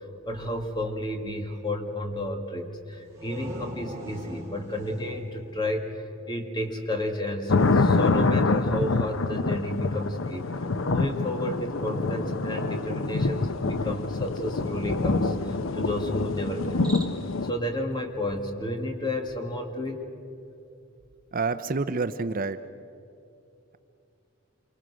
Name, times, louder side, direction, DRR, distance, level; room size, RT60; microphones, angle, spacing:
voice 1, 0.0-16.9 17.4-20.1, left 1 dB, 20° left, 3 dB, 2.2 m, -32 dB
sound 1, 2.9-6.5, equal, 15° right, 4.3 m, -41 dB
sound 2, 7.5-17.5, left 3 dB, 75° left, 0.7 m, -26 dB
Cricket, 16.6-17.4, right 2 dB, 5° left, 2.2 m, -43 dB
voice 2, 21.3-22.6, right 4 dB, 40° right, 11 dB, 0.6 m, -28 dB
27.5 x 25.0 x 6.3 m, 2.8 s
head